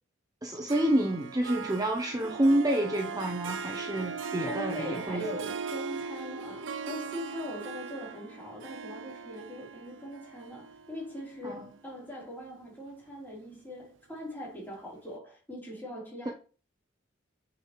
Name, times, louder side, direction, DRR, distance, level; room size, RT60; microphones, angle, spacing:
voice 1, 0.4-5.2 11.4-11.7 16.3-16.4, right 1 dB, 20° right, 0.7 m, -28 dB
Harp, 0.7-12.1, right 5 dB, 75° right, 0.6 m, -39 dB
voice 2, 4.4-16.3, left 1 dB, 10° left, 3.6 m, -41 dB
9.0 x 5.8 x 3.1 m
head